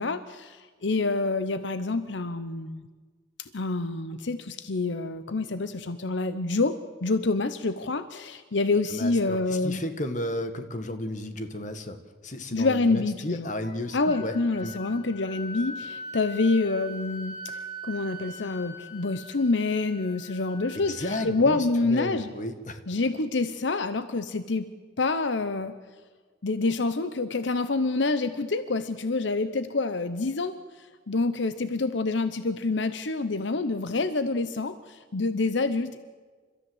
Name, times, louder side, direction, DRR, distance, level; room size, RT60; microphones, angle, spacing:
voice 1, 0.0-2.9 3.5-6.7 7.0-9.8 12.5-13.5 13.9-22.3 22.9-24.7 25.0-25.7 26.4-36.0, left 3 dB, 75° left, 12 dB, 0.8 m, -27 dB
voice 2, 8.9-14.3 14.6-14.7 20.7-22.8, left 1 dB, 40° left, 9 dB, 1.6 m, -33 dB
Wind instrument woodwind instrument, 13.6-21.4, equal, 55° left, 3.2 m, -42 dB
29.5 x 14.0 x 8.0 m, 1.5 s
head